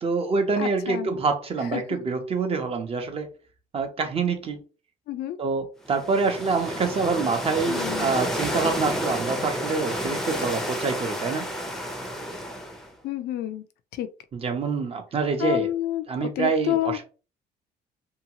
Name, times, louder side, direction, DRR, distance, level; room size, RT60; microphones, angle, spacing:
voice 1, 0.0-3.3 3.7-4.6 5.4-11.5 14.3-15.7 16.1-17.0, right 4 dB, 35° right, 0.7 m, -26 dB
voice 2, 0.6-1.1 1.7-1.8 5.1-5.4 7.7-8.1 13.0-13.6 13.9-14.1 15.4-17.0, left 12 dB, 70° left, 0.5 m, -29 dB
sound 1, 5.9-12.9, equal, 5° left, 0.6 m, -30 dB
2.7 x 2.3 x 2.8 m
cardioid pair, 110°, 17 cm